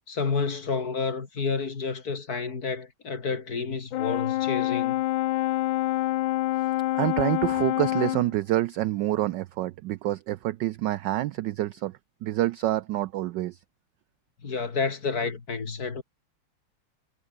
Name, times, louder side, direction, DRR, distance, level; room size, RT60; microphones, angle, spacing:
voice 1, 0.1-5.0 14.4-16.0, left 4 dB, 45° left, 2.7 m, -30 dB
Brass instrument, 3.9-8.3, left 16 dB, 75° left, 1.3 m, -26 dB
voice 2, 6.9-11.9 12.2-13.6, right 15 dB, 75° right, 1.0 m, -27 dB
omnidirectional pair, 2.4 m